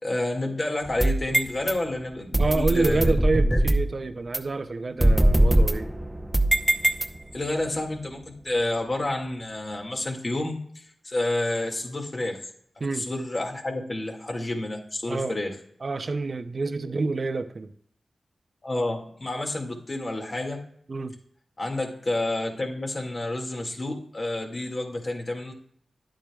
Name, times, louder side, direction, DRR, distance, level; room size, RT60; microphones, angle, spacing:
voice 1, 0.0-3.1 3.5-3.6 7.3-12.4 12.8-15.5 18.6-20.6 21.6-25.5, left 2 dB, 45° left, 2 dB, 2.1 m, -29 dB
sound 1, 0.8-1.7 2.3-3.9 4.3-4.4 5.0-7.5, right 1 dB, 15° right, 0.8 m, -21 dB
voice 2, 2.4-5.9 12.8-13.1 15.1-15.4 15.8-17.7 20.9-21.1, right 3 dB, 55° right, 10 dB, 0.6 m, -28 dB
10.5 x 8.7 x 2.4 m, 0.65 s
cardioid pair, 50°, 0 cm